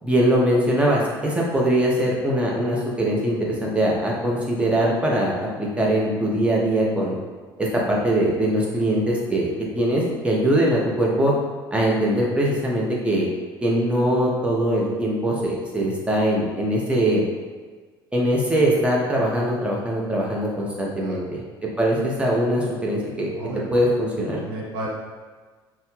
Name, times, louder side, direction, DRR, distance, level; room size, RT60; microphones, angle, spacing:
voice 1, 0.0-7.2 7.6-11.3 11.7-13.3 13.6-17.2 18.1-21.4 21.8-23.3 23.7-24.4, right 1 dB, 10° right, -4 dB, 1.1 m, -22 dB
voice 2, 24.4-24.9, right 2 dB, 65° right, -3 dB, 0.8 m, -32 dB
5.5 x 2.3 x 3.2 m, 1.4 s
figure-of-eight pair, 60°, 13 cm